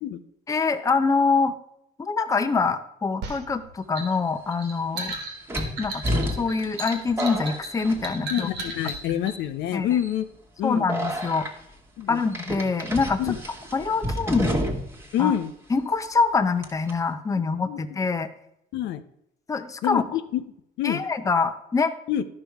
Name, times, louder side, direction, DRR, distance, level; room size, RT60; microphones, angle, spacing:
voice 1, 0.5-1.5 2.0-5.2 5.8-6.0 6.4-8.5 9.7-9.9 10.6-11.5 12.1-13.2 13.7-14.6 15.2-15.3 15.7-18.3 19.5-20.1 20.8-21.9, left 4 dB, 20° left, 9 dB, 0.6 m, -24 dB
sound 1, 3.2-9.4, right 3 dB, 75° right, 1.6 m, -35 dB
sound 2, 4.1-4.2 5.5-8.5 8.8-9.3 9.9-10.2 10.9-11.5 12.3-15.1 15.3-15.4 16.6-16.9, equal, 15° right, 1.3 m, -30 dB
voice 2, 8.3-10.3 10.6-10.8 12.0-12.2 13.2-13.4 15.1-15.5 17.7-17.8 18.7-19.0 19.8-20.4 20.8-21.0 22.1-22.2, left 11 dB, 75° left, 10 dB, 0.7 m, -26 dB
12.0 x 5.4 x 4.6 m, 0.79 s
cardioid pair, 125°, 18 cm